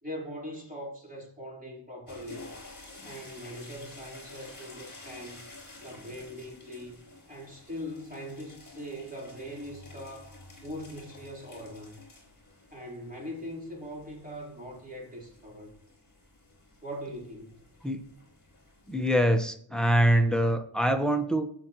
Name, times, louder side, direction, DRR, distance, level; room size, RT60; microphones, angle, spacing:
voice 1, 0.0-2.5 3.0-5.5 5.8-7.0 7.3-10.3 10.6-12.0 12.7-15.7 16.8-17.6, equal, 15° right, 3.8 m, -41 dB
sound 1, 2.1-19.4, left 2 dB, 40° left, 4.7 m, -51 dB
voice 2, 18.9-21.5, right 1 dB, ahead, 1.0 m, -24 dB
16.5 x 6.0 x 3.0 m
wide cardioid pair, 115°, 49 cm